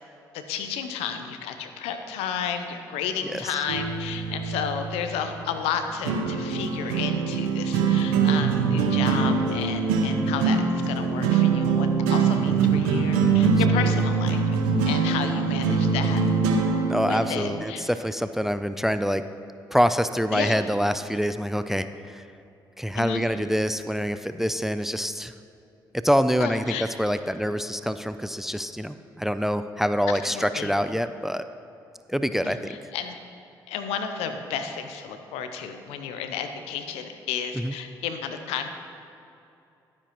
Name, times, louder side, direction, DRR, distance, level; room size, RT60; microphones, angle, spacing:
voice 1, 0.3-14.6 14.9-16.2 17.0-17.8 20.3-20.6 23.0-23.2 26.4-26.8 30.1-30.7 32.4-33.2 33.7-38.7, left 7 dB, 75° left, 7 dB, 0.7 m, -32 dB
voice 2, 3.2-3.6 13.4-13.5 13.9-14.0 16.9-19.2 19.7-22.2 22.8-25.3 26.0-31.4 32.1-32.8 37.5-37.7, equal, 5° right, 11 dB, 0.4 m, -26 dB
sound 1, 3.7-17.6, right 5 dB, 80° right, 0.8 m, -23 dB
11.5 x 9.6 x 3.0 m, 2.7 s
hypercardioid pair, 45°, 10 cm